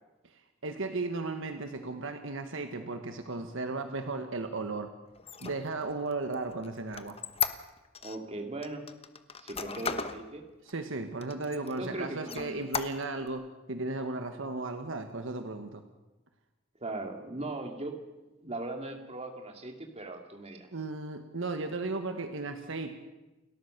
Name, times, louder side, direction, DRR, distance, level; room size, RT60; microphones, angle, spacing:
voice 1, 0.6-4.9 5.4-7.1 10.6-15.8 20.7-22.9, right 3 dB, 70° right, 7 dB, 1.4 m, -35 dB
Squeak, 5.2-8.2 8.6-10.2 10.7-10.8 11.2-11.9 12.2-13.3, left 6 dB, 30° left, 1.1 m, -35 dB
voice 2, 8.0-8.8 9.4-10.4 11.8-12.6 16.8-18.0 18.4-20.7, right 2 dB, 30° right, 4 dB, 2.7 m, -39 dB
29.5 x 13.5 x 6.7 m, 1.1 s
head